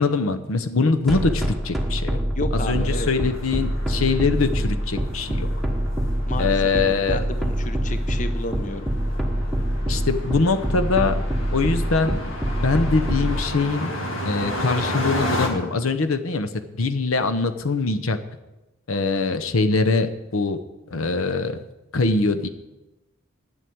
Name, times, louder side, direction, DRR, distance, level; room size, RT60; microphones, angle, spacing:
voice 1, 0.0-2.2 2.5-5.5 6.4-7.2 9.9-11.2 11.5-12.3 12.6-13.9 14.2-18.2 18.9-20.6 20.9-21.6 21.9-22.5, left 3 dB, 85° left, 10 dB, 0.9 m, -23 dB
sound 1, 1.1-13.3, equal, ahead, 1.2 m, -24 dB
voice 2, 2.3-3.1 6.3-8.9, left 2 dB, 40° left, 9 dB, 0.8 m, -32 dB
sound 2, 2.8-15.5, left 1 dB, 65° left, 2.1 m, -33 dB
9.7 x 7.7 x 8.6 m, 1.0 s
head